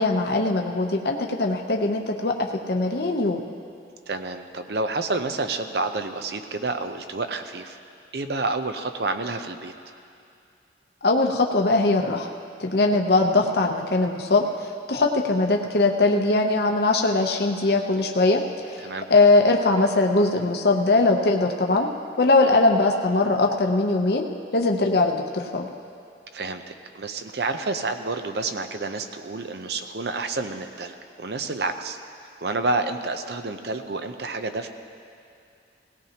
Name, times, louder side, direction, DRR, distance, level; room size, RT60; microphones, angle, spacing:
voice 1, 0.0-2.3 2.7-3.4 11.0-12.3 12.6-21.9 22.2-24.2 24.5-25.7, left 2 dB, 60° left, 2 dB, 0.8 m, -21 dB
voice 2, 4.1-7.8 8.1-9.7 18.8-19.1 26.3-30.9 31.2-32.0 32.4-34.7, right 3 dB, 65° right, 8 dB, 0.7 m, -29 dB
18.0 x 17.0 x 2.9 m, 2.4 s
head